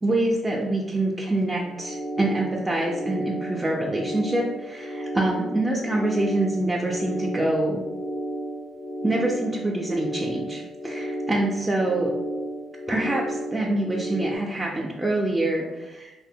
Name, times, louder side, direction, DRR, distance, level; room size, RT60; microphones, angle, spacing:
voice 1, 0.0-7.8 9.0-12.1 12.9-16.1, right 1 dB, 20° right, -2 dB, 0.3 m, -25 dB
sound 1, 1.6-14.4, right 1 dB, 75° left, 0.5 m, -33 dB
2.7 x 2.1 x 2.6 m, 1.1 s
cardioid pair, 90°, 0 cm